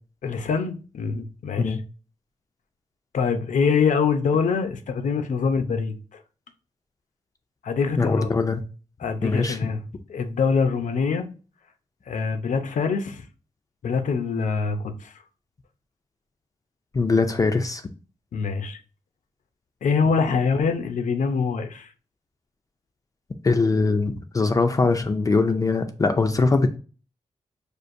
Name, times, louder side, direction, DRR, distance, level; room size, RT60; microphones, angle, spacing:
voice 1, 0.2-1.8 3.1-5.9 7.6-8.3 9.0-9.8 10.1-11.3 12.1-13.2 13.8-15.1 18.3-18.8 19.8-21.9, left 5 dB, 90° left, 0.6 m, -24 dB
voice 2, 8.0-8.6 9.2-9.6 16.9-17.8 23.4-26.8, left 3 dB, 30° left, 0.3 m, -22 dB
6.2 x 2.5 x 2.5 m
wide cardioid pair, 175°, 13 cm